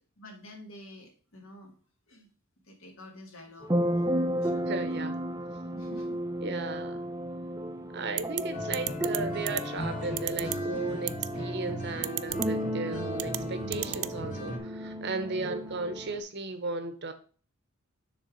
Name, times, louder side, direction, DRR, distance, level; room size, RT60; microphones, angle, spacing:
voice 1, 0.2-1.7 2.1-2.3 2.6-3.7 4.2-5.0 5.7-6.2 15.2-15.5, left 1 dB, 70° left, 2 dB, 1.6 m, -49 dB
sound 1, 3.6-16.2, equal, 15° right, 0.5 m, -33 dB
voice 2, 4.7-5.2 6.4-7.1 7.9-17.1, right 3 dB, 55° right, 9 dB, 0.9 m, -35 dB
sound 2, 8.2-8.4 8.7-9.2 9.5-9.6 10.2-10.6 11.1-11.3 12.0-12.5 13.2-13.4 13.7-14.1, right 18 dB, 90° right, 0.3 m, -31 dB
sound 3, 8.5-14.6, equal, 40° left, 1.1 m, -38 dB
6.7 x 3.6 x 4.9 m, 0.39 s
head